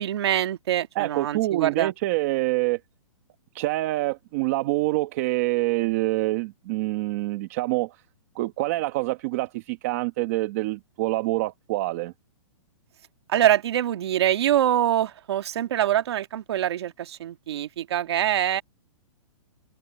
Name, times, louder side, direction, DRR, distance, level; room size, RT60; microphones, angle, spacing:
voice 1, 0.0-1.9 13.3-18.6, right 11 dB, 50° right, 1.8 m, -24 dB
voice 2, 0.9-2.8 3.5-8.0 8.3-12.1, right 18 dB, 25° right, 1.1 m, -26 dB
hypercardioid pair, 175°, 18 cm